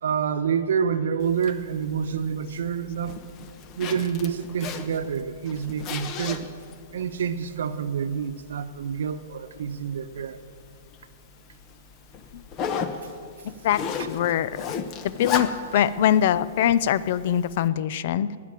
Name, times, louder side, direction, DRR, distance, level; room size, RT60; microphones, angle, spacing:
voice 1, 0.0-3.2 3.8-6.4 6.9-10.4, right 7 dB, 75° right, 10 dB, 1.0 m, -27 dB
Zipper (clothing), 1.2-17.7, left 6 dB, 25° left, 0.8 m, -37 dB
voice 2, 13.4-14.8 15.0-18.4, left 10 dB, 45° left, 17 dB, 0.5 m, -23 dB
19.5 x 6.8 x 8.9 m, 2.1 s
hypercardioid pair, 170°, 0 cm